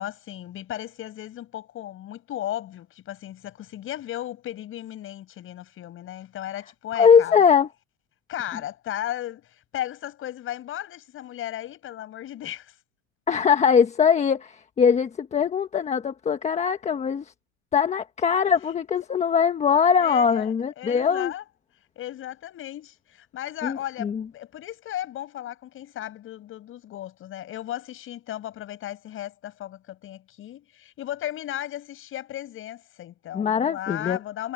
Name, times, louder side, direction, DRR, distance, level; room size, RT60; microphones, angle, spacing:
voice 1, 0.0-7.5 8.3-9.5 9.7-12.7 20.0-21.5 22.0-34.5, left 12 dB, 35° left, 7.2 m, -35 dB
voice 2, 6.9-7.7 13.3-17.2 17.7-21.3 23.6-24.2 33.3-34.2, left 7 dB, 20° left, 1.2 m, -21 dB
supercardioid pair, 145°, 38 cm